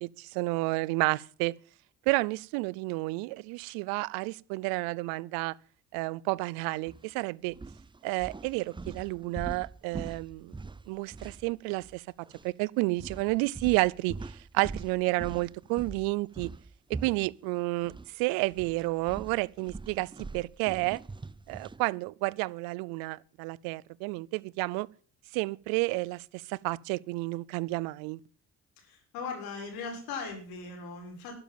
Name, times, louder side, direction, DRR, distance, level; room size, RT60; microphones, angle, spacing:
voice 1, 0.0-1.5 2.1-5.5 5.9-7.5 8.0-10.5 10.9-12.0 12.4-16.5 17.0-21.0 21.5-24.9 25.3-28.2, right 23 dB, 85° right, 0.6 m, -31 dB
sound 1, 6.9-7.1 7.5-12.0 12.3-12.5 13.0-18.1 18.4-21.9, right 3 dB, 15° right, 0.7 m, -43 dB
voice 2, 28.8-31.4, left 4 dB, 85° left, 6.3 m, -39 dB
12.0 x 10.5 x 7.6 m
supercardioid pair, 60°, 35 cm